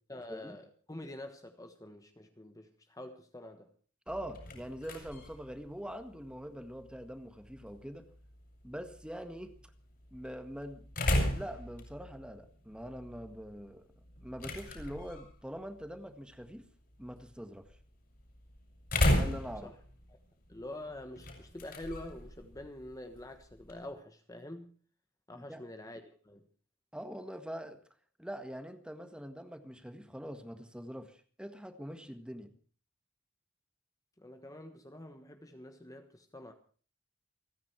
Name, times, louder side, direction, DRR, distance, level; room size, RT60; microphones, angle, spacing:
voice 1, 0.1-3.7 19.6-19.7 20.5-24.7 25.3-26.5 34.2-36.5, left 1 dB, 15° left, 1.3 m, -46 dB
sound 1, 4.1-23.9, left 1 dB, 50° left, 6.3 m, -37 dB
voice 2, 4.1-8.1 8.6-9.5 10.1-10.9 11.3-13.9 14.2-16.7 17.0-17.7 19.1-19.7 25.3-25.6 26.9-27.8 28.2-32.5, equal, 5° right, 1.7 m, -43 dB
29.0 x 10.0 x 4.6 m
head